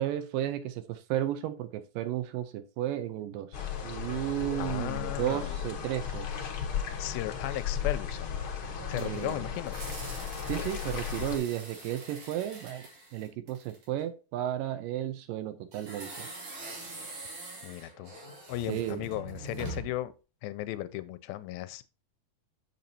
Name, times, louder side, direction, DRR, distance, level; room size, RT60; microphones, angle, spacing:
voice 1, 0.0-3.6 3.8-6.3 8.9-9.5 10.4-12.8 13.1-16.3 18.7-19.0, right 12 dB, 80° right, 2.2 m, -33 dB
sound 1, 3.5-11.4, left 8 dB, 65° left, 1.3 m, -35 dB
voice 2, 4.6-5.6 7.0-8.4 8.9-9.8 17.6-18.1 18.5-20.1 20.4-21.9, left 14 dB, 85° left, 2.3 m, -36 dB
sound 2, 8.6-14.0 15.7-20.1, right 2 dB, 40° right, 3.3 m, -44 dB
7.7 x 7.1 x 2.7 m
omnidirectional pair, 4.2 m